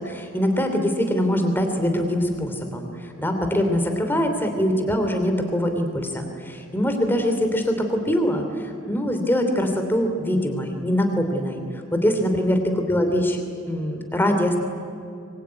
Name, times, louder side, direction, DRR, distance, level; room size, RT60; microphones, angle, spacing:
voice 1, 0.0-13.4 13.7-14.6, equal, 10° left, 5 dB, 2.9 m, -23 dB
25.0 x 21.5 x 9.6 m, 2.6 s
head